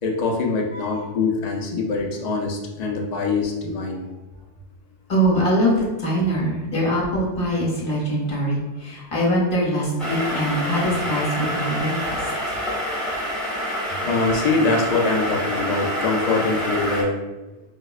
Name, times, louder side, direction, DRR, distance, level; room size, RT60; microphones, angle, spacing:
voice 1, 0.0-4.0 14.0-17.2, left 3 dB, 70° left, 0 dB, 0.4 m, -23 dB
voice 2, 0.7-1.1 5.1-12.2, equal, 50° left, -5 dB, 1.0 m, -23 dB
sound 1, 10.0-17.0, equal, ahead, 0.8 m, -27 dB
4.8 x 2.0 x 2.3 m, 1.1 s
omnidirectional pair, 1.3 m